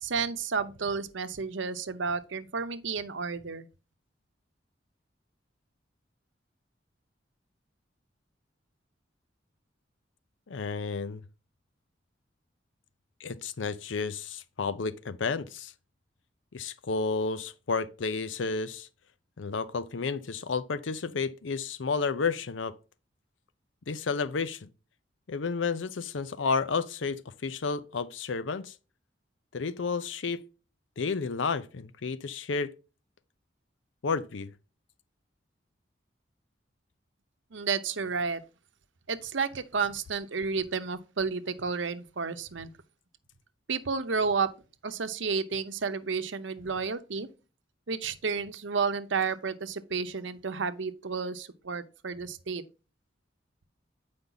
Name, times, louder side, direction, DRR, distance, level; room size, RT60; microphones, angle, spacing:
voice 1, 0.0-3.7 37.5-38.4 39.1-42.7 43.7-44.5 44.8-47.3 47.9-52.6, right 5 dB, 80° right, 0.8 m, -31 dB
voice 2, 10.5-11.2 13.2-15.7 16.5-18.9 19.4-22.7 23.9-24.7 25.3-28.7 29.5-30.4 31.0-32.7 34.0-34.5, left 4 dB, 85° left, 0.6 m, -31 dB
8.2 x 5.2 x 3.9 m
head